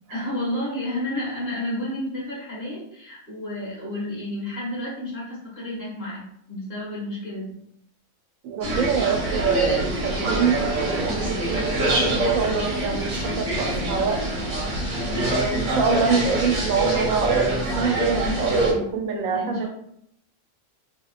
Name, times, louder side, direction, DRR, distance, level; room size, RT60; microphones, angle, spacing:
voice 1, 0.1-7.5 11.5-11.8 15.0-15.4 18.2-18.8 19.2-19.7, left 1 dB, 50° left, -7 dB, 1.9 m, -31 dB
voice 2, 8.4-14.2 15.3-19.7, right 5 dB, 90° right, 3 dB, 1.0 m, -25 dB
sound 1, 8.6-18.7, right 2 dB, 70° right, 1.2 m, -25 dB
3.5 x 2.8 x 2.4 m, 0.73 s
omnidirectional pair, 1.4 m